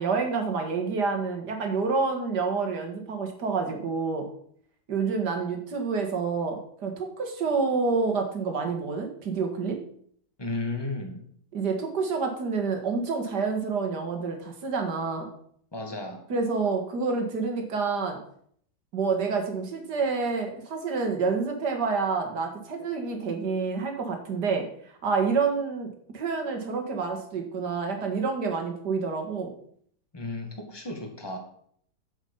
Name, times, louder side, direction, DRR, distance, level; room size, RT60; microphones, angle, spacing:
voice 1, 0.0-4.3 4.9-9.8 11.5-15.3 16.3-18.2 18.9-24.7 25.0-29.5, right 4 dB, 70° right, 4 dB, 2.3 m, -28 dB
voice 2, 10.4-11.3 15.7-16.2 30.1-31.4, left 2 dB, 15° left, 2 dB, 1.8 m, -34 dB
9.6 x 7.2 x 5.6 m, 0.62 s
omnidirectional pair, 1.9 m